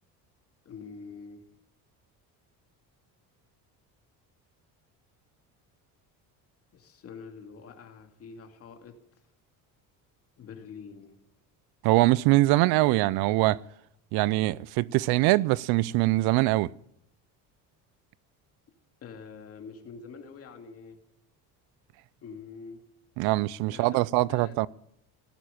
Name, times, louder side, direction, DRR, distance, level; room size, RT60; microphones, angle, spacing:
voice 1, 0.7-1.4 6.7-8.9 10.4-11.1 19.0-21.0 22.2-22.8 23.7-24.0 24.3-24.6, left 5 dB, 40° left, 2.3 m, -45 dB
voice 2, 11.8-13.6 14.1-16.7 23.2-24.7, right 19 dB, 85° right, 0.6 m, -23 dB
17.5 x 9.2 x 8.8 m
cardioid pair, 155°, 36 cm